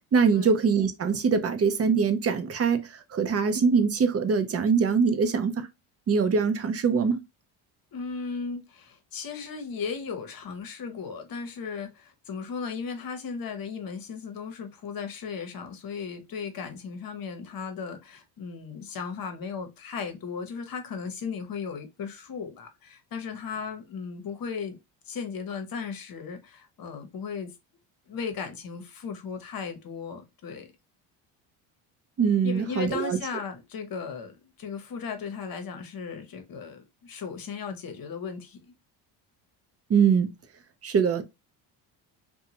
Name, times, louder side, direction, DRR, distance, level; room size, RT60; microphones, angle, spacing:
voice 1, 0.1-5.7 6.1-7.2 32.2-33.2 39.9-40.3 40.8-41.2, right 5 dB, 30° right, 0.6 m, -23 dB
voice 2, 7.9-24.8 25.1-27.5 28.1-30.7 32.4-38.6, left 5 dB, 45° left, 0.9 m, -36 dB
2.7 x 2.3 x 2.7 m
supercardioid pair, 75°, 48 cm